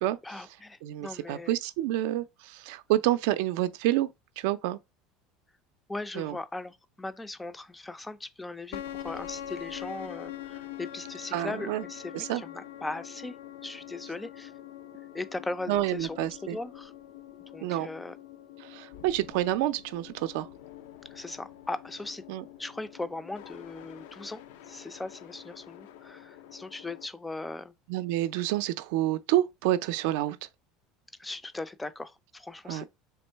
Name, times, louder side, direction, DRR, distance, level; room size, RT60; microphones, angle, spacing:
voice 1, 0.2-1.5 5.9-13.4 13.6-14.5 15.1-16.9 17.5-18.2 21.1-22.2 22.6-24.4 24.7-27.7 31.2-32.9, left 2 dB, 10° left, 0.3 m, -39 dB
voice 2, 0.8-4.1 4.4-4.8 6.2-6.4 11.3-11.8 12.1-12.4 15.7-16.6 17.6-17.9 18.6-20.5 22.3-22.4 27.9-30.4 32.7-32.8, right 14 dB, 75° right, 0.4 m, -28 dB
sound 1, 8.7-27.1, left 11 dB, 80° left, 0.4 m, -45 dB
3.5 x 3.0 x 4.4 m
cardioid pair, 155°, 0 cm